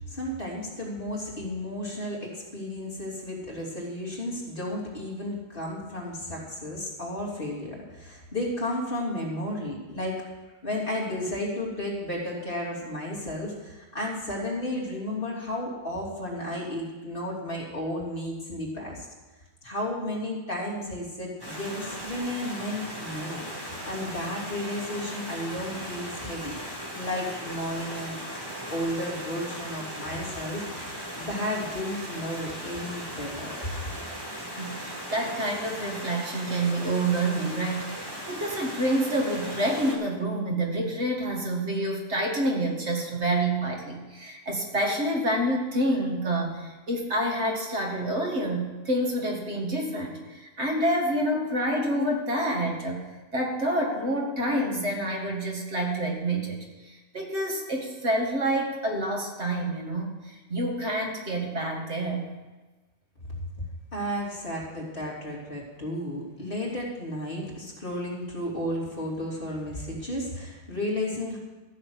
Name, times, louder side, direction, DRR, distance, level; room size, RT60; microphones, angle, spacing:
voice 1, 0.1-10.2 10.6-19.1 19.6-28.2 28.7-33.5 63.9-71.4, left 1 dB, 45° left, -4 dB, 3.2 m, -33 dB
Stream, 21.4-39.9, equal, 20° right, 2.8 m, -38 dB
voice 2, 34.4-62.3, right 1 dB, 65° right, 0 dB, 2.3 m, -28 dB
14.0 x 6.6 x 7.8 m, 1.2 s
omnidirectional pair, 1.2 m